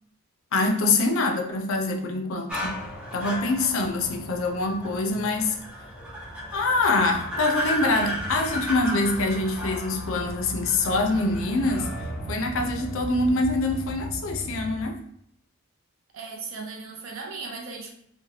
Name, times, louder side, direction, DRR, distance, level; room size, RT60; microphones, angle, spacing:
voice 1, 0.5-2.7 3.1-5.6 6.5-11.9 12.3-15.0, left 2 dB, 60° left, 4 dB, 0.4 m, -25 dB
sound 1, 2.5-14.9, equal, 5° right, 0.4 m, -34 dB
voice 2, 16.1-17.9, right 4 dB, 60° right, 2 dB, 0.5 m, -37 dB
3.0 x 2.1 x 2.7 m, 0.71 s
head